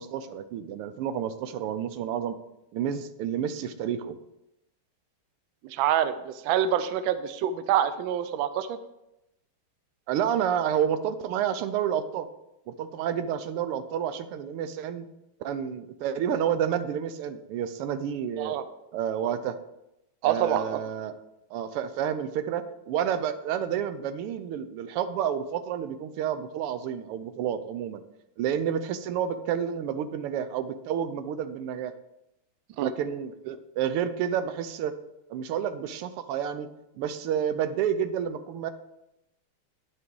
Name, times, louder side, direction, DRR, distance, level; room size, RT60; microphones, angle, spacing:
voice 1, 0.0-2.4 2.7-4.2 10.1-12.3 12.7-15.1 15.4-18.5 18.9-19.6 20.2-21.2 21.5-28.0 28.4-31.9 32.8-34.9 35.3-36.7 37.0-38.7, right 9 dB, 90° right, 11 dB, 1.6 m, -30 dB
voice 2, 5.6-8.8 18.4-18.6 20.2-20.8 32.8-32.9, right 10 dB, 75° right, 12 dB, 1.3 m, -26 dB
9.5 x 6.2 x 4.6 m, 0.88 s
omnidirectional pair, 2.4 m